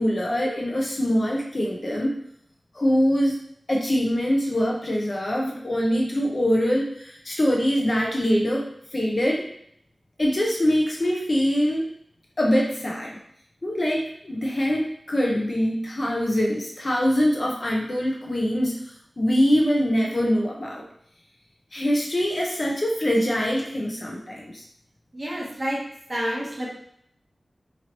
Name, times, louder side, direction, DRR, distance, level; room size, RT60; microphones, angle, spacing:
voice 1, 0.0-2.1 2.7-3.4 3.7-9.4 10.2-11.9 12.4-13.1 13.6-18.8 19.2-20.8 21.7-24.6, equal, 40° left, -2 dB, 0.7 m, -23 dB
voice 2, 25.1-25.8 26.1-26.7, equal, 30° right, -4 dB, 0.9 m, -28 dB
3.0 x 2.7 x 2.9 m, 0.71 s
wide cardioid pair, 95°, 0 cm